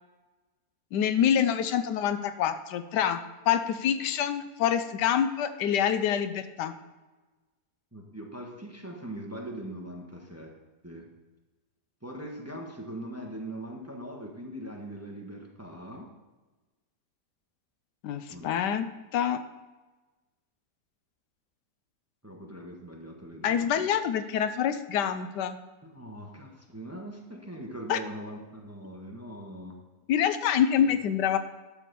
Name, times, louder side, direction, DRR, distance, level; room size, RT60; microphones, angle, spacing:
voice 1, 0.9-3.2 3.5-6.7 18.0-18.9 19.1-19.4 23.4-25.6 27.9-28.0 30.1-31.4, left 9 dB, 85° left, 11 dB, 1.3 m, -26 dB
voice 2, 7.9-10.5 10.8-11.1 12.0-16.1 18.3-18.6 22.2-23.8 25.8-29.8 30.9-31.0, right 1 dB, 10° right, 0 dB, 1.1 m, -41 dB
11.5 x 4.3 x 6.8 m, 1.2 s
omnidirectional pair, 1.8 m